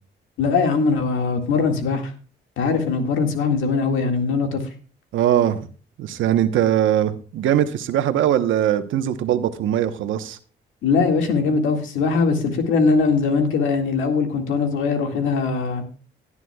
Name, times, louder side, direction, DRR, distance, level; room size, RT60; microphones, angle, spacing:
voice 1, 0.4-2.1 2.6-4.6 10.8-15.8, left 4 dB, 85° left, 4 dB, 2.0 m, -21 dB
voice 2, 5.1-5.7 6.0-10.4, right 10 dB, 80° right, 9 dB, 1.1 m, -21 dB
17.5 x 9.8 x 2.3 m, 0.38 s
cardioid pair, 90°, 20 cm